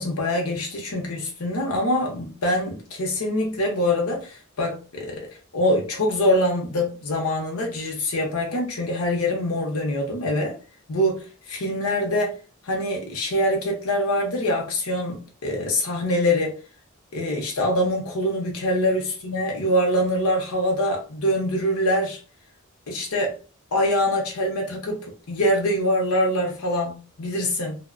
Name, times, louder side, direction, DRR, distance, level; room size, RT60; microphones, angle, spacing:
voice 1, 0.0-5.3 5.5-10.6 10.9-12.3 12.6-16.6 17.1-22.2 22.9-23.4 23.7-27.8, left 1 dB, 85° left, 0.7 m, -24 dB
2.7 x 2.1 x 2.4 m
head